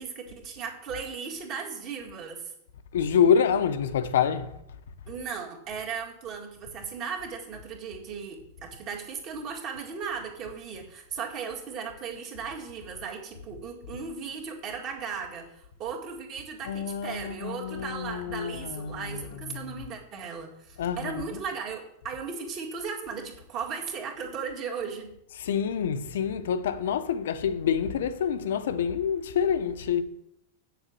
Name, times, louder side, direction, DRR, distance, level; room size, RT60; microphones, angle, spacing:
voice 1, 0.0-2.5 5.1-25.1, right 6 dB, 30° right, 2.1 m, -37 dB
voice 2, 2.9-4.5 16.6-19.8 20.8-21.3 25.4-30.0, left 7 dB, 80° left, 0.9 m, -27 dB
8.5 x 7.0 x 7.7 m
supercardioid pair, 165°, 0 cm